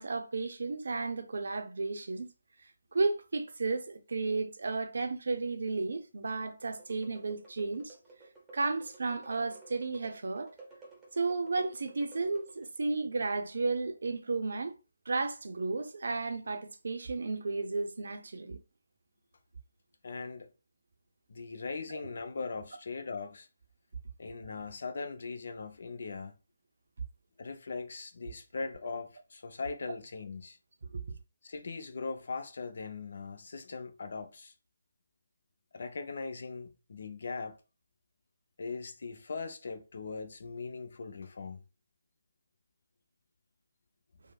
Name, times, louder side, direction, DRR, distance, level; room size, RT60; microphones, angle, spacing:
voice 1, 0.0-2.3 2.9-7.9 8.5-10.5 11.2-14.8 15.1-18.6 21.9-22.0 30.9-31.0, right 3 dB, 65° right, 0.4 m, -33 dB
sound 1, 6.7-12.8, right 2 dB, 10° right, 0.8 m, -55 dB
voice 2, 20.0-20.5 21.3-23.5 24.2-26.4 27.4-30.6 31.4-34.5 35.7-37.6 38.6-41.6, left 4 dB, 60° left, 0.5 m, -40 dB
3.2 x 2.0 x 2.3 m
figure-of-eight pair, 150°, 0 cm